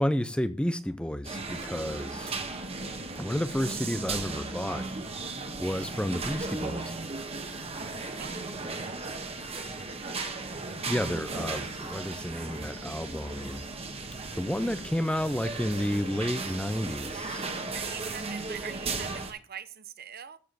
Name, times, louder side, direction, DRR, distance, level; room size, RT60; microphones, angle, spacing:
voice 1, 0.0-2.4 3.2-4.9 5.6-6.9 10.9-13.7 14.3-17.5, equal, 5° left, 0.5 m, -31 dB
sound 1, 1.2-19.3, right 3 dB, 25° right, 1.4 m, -36 dB
voice 2, 17.7-20.4, right 8 dB, 45° right, 0.8 m, -43 dB
13.5 x 5.0 x 6.7 m
head